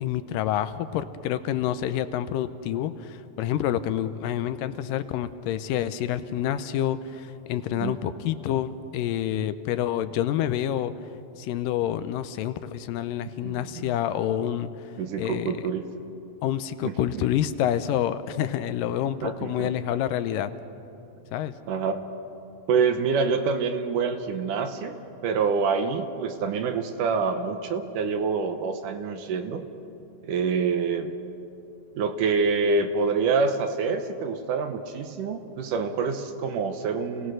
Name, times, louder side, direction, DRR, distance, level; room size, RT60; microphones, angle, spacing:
voice 1, 0.0-10.9 11.4-14.7 15.2-15.6 16.4-20.5 21.3-21.5, left 11 dB, 80° left, 12 dB, 2.2 m, -28 dB
voice 2, 13.4-13.9 15.0-15.8 16.8-17.3 19.2-19.7 21.7-22.0 22.7-25.0 25.2-29.6 30.2-31.1 32.0-37.3, right 5 dB, 75° right, 7 dB, 2.4 m, -26 dB
28.5 x 18.0 x 6.3 m, 2.8 s
omnidirectional pair, 4.0 m